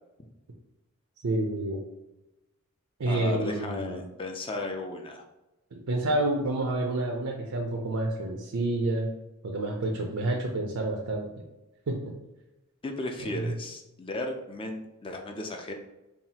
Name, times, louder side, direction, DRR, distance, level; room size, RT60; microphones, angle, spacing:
voice 1, 1.2-1.8 3.0-4.0 5.7-9.1 9.4-11.3 11.9-12.1 13.4-13.5, right 2 dB, 75° right, 1 dB, 0.5 m, -29 dB
voice 2, 3.1-5.2 12.8-15.7, left 2 dB, 25° left, 3 dB, 0.4 m, -35 dB
5.5 x 2.4 x 2.8 m, 0.99 s
head